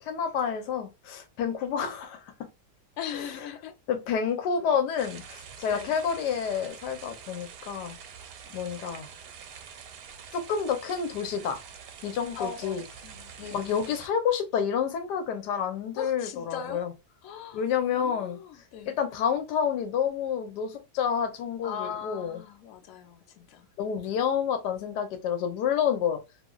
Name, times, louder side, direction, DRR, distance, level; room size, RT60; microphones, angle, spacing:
voice 1, 0.0-2.2 3.1-3.3 3.9-8.0 8.5-9.1 10.3-11.6 12.0-12.8 13.5-16.9 17.5-18.4 18.9-22.4 23.8-26.2, left 7 dB, 90° left, 1.2 m, -29 dB
voice 2, 3.0-3.8 5.7-5.9 12.3-13.7 16.0-16.9 17.2-17.6 17.9-19.0 21.6-23.7, left 7 dB, 65° left, 0.9 m, -39 dB
sound 1, 5.0-14.1, right 7 dB, 90° right, 1.2 m, -46 dB
3.0 x 2.5 x 2.2 m
omnidirectional pair, 1.8 m